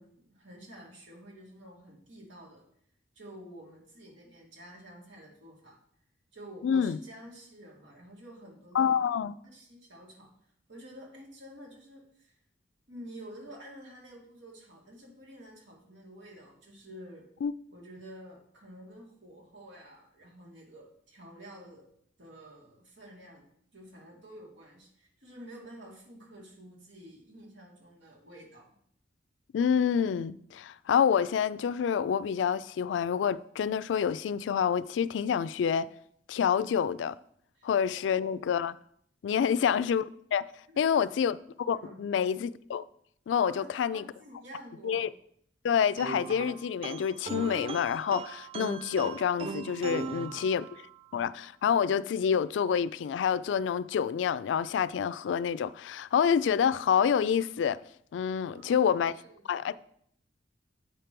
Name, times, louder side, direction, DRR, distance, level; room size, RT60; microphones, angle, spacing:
voice 1, 0.0-2.7 3.1-5.8 6.3-9.0 9.4-10.3 10.7-12.4 12.9-17.3 17.7-21.9 22.2-23.5 23.7-28.7 37.6-37.7 37.9-38.3 39.4-39.5 40.7-40.9 41.7-42.0 43.4-43.7 43.9-45.1 50.0-50.5 58.5-58.9 59.2-59.8, equal, 90° right, 2.2 m, -50 dB
voice 2, 6.6-7.0 8.7-9.3 17.4-17.5 29.5-35.9 36.3-37.2 37.6-38.8 39.2-40.5 40.8-42.8 43.3-44.0 44.8-45.1 45.6-50.7 51.1-57.8 58.1-59.1 59.5-59.8, left 7 dB, 80° left, 0.3 m, -27 dB
sound 1, 46.0-51.0, right 4 dB, 30° right, 0.3 m, -39 dB
8.4 x 4.4 x 5.2 m
head